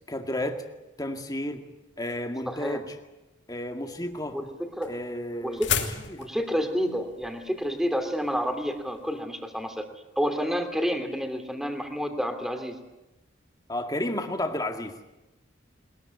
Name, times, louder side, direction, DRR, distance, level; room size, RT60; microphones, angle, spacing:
voice 1, 0.1-0.6 1.0-1.6 2.0-3.0 3.5-4.4 4.9-5.6 6.0-6.3 13.7-15.0, left 1 dB, 20° left, 5 dB, 2.1 m, -32 dB
voice 2, 2.5-2.8 4.3-4.9 5.4-5.7 6.2-9.9 10.2-12.8, equal, ahead, 6 dB, 2.7 m, -29 dB
sound 1, 3.9-9.1, left 7 dB, 65° left, 2.8 m, -34 dB
22.0 x 21.5 x 9.5 m, 1.0 s
head